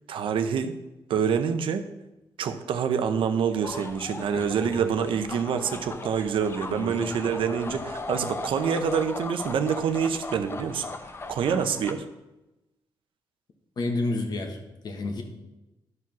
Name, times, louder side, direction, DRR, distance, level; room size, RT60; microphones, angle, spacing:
voice 1, 0.1-0.8 1.1-1.8 2.4-10.9 11.3-12.0, right 7 dB, 80° right, 9 dB, 0.8 m, -26 dB
sound 1, 3.6-11.9, left 3 dB, 30° left, 0.8 m, -38 dB
voice 2, 4.3-4.8 6.7-7.8 13.8-15.2, left 2 dB, 50° left, 3 dB, 1.5 m, -32 dB
11.0 x 4.8 x 6.1 m, 0.99 s
cardioid pair, 115°, 9 cm